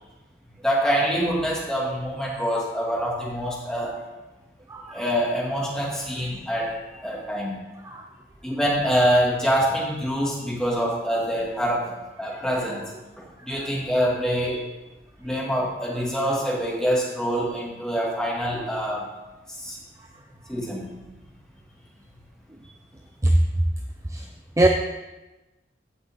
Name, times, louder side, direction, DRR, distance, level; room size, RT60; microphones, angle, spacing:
voice 1, 0.6-3.9 4.9-7.6 8.4-12.9 13.5-14.6 15.2-19.1 19.6-19.8 20.5-20.9, equal, 5° left, -4 dB, 2.2 m, -25 dB
voice 2, 4.7-4.9 7.8-8.0 23.2-23.3 24.1-24.2 24.6-24.7, right 2 dB, 15° right, 2 dB, 0.5 m, -21 dB
16.0 x 6.0 x 3.6 m, 1.1 s
head